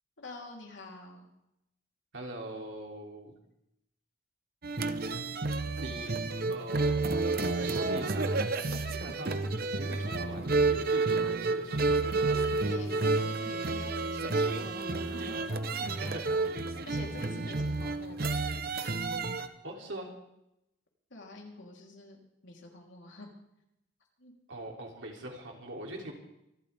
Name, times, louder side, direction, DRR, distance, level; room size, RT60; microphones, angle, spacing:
voice 1, 0.2-1.3 8.6-8.9 12.6-14.7 15.1-15.5 16.9-18.3 19.0-19.2 21.1-23.3 24.2-24.3, left 2 dB, 75° left, -1 dB, 3.5 m, -48 dB
voice 2, 2.1-3.3 5.8-6.2 6.5-8.4 8.9-12.1 16.0-16.5 19.6-20.1 24.5-26.1, right 1 dB, 75° right, 0 dB, 3.1 m, -42 dB
sound 1, 4.6-19.5, right 3 dB, 50° right, 0.9 m, -30 dB
sound 2, 12.7-17.8, left 1 dB, 15° left, 1.6 m, -48 dB
25.5 x 12.5 x 3.5 m, 0.84 s
head